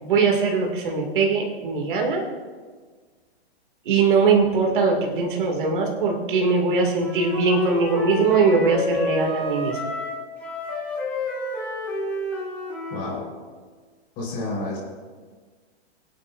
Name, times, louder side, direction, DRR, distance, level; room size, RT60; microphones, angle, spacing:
voice 1, 0.0-2.3 3.9-9.8, right 4 dB, 50° right, 0 dB, 2.2 m, -21 dB
Wind instrument woodwind instrument, 6.9-13.2, left 2 dB, 5° left, 2.5 m, -30 dB
voice 2, 12.9-13.2 14.2-14.8, left 2 dB, 20° left, -4 dB, 4.0 m, -29 dB
25.0 x 8.5 x 2.5 m, 1.5 s
hypercardioid pair, 175°, 33 cm